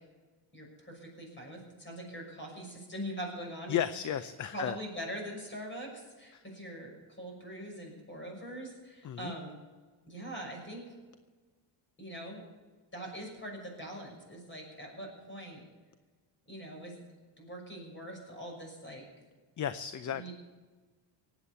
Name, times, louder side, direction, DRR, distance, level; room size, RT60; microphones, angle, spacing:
voice 1, 0.5-3.8 4.5-9.6 10.1-10.9 12.0-12.4 12.9-15.6 16.5-17.0 17.4-19.0 20.1-20.3, equal, 25° left, 1 dB, 6.1 m, -42 dB
voice 2, 3.7-4.8 6.3-6.4 9.0-9.3 19.6-20.3, left 10 dB, 40° left, 13 dB, 0.6 m, -34 dB
19.0 x 8.4 x 7.0 m, 1.4 s
cardioid pair, 120°, 47 cm